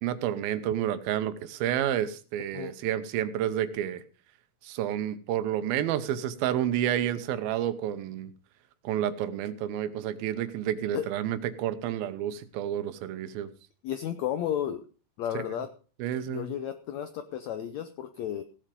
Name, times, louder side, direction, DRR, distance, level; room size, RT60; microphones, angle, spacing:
voice 1, 0.0-4.0 4.6-8.3 8.8-13.5 16.0-16.5, right 11 dB, 85° right, 12 dB, 2.8 m, -30 dB
voice 2, 13.8-14.8 15.2-15.7 16.3-18.4, left 10 dB, 85° left, 10 dB, 1.6 m, -33 dB
16.5 x 7.6 x 5.1 m, 0.37 s
omnidirectional pair, 4.1 m